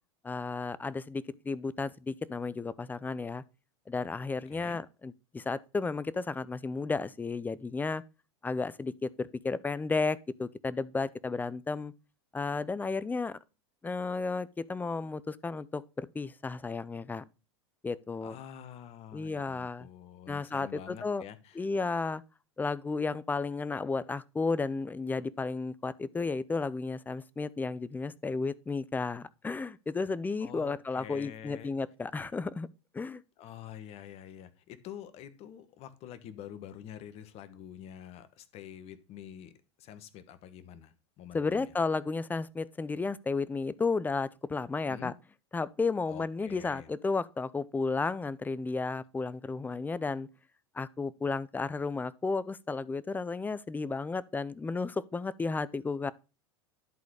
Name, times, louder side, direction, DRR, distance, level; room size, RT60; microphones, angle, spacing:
voice 1, 0.2-3.4 3.9-8.0 8.4-11.9 12.3-13.4 13.8-17.2 17.8-18.4 19.1-19.9 20.3-21.2 21.6-22.2 22.6-32.7 32.9-33.2 41.3-45.1 45.5-50.3 50.7-56.1, left 4 dB, 10° left, 0.5 m, -33 dB
voice 2, 4.5-4.8 18.2-21.6 30.4-31.7 33.4-39.5 39.8-41.7 44.9-45.1 46.1-46.9, left 10 dB, 45° left, 1.2 m, -47 dB
11.0 x 4.1 x 4.7 m
hypercardioid pair, 105°, 14 cm